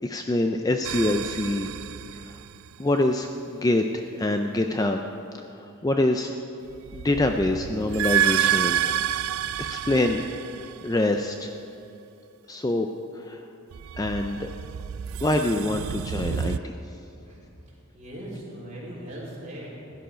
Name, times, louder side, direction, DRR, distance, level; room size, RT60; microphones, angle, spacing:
voice 1, 0.0-1.7 2.2-2.4 2.8-5.0 5.5-6.3 6.9-8.8 9.6-10.2 10.5-11.5 12.5-12.9 13.1-13.5 14.0-14.5 15.2-16.8, left 2 dB, 15° left, 5 dB, 0.4 m, -25 dB
sound 1, 0.8-2.8 6.7-11.2 13.7-16.6, right 10 dB, 70° right, 0.3 m, -29 dB
voice 2, 17.3-20.0, right 1 dB, 35° right, -6 dB, 3.4 m, -40 dB
16.0 x 10.5 x 5.1 m, 2.7 s
head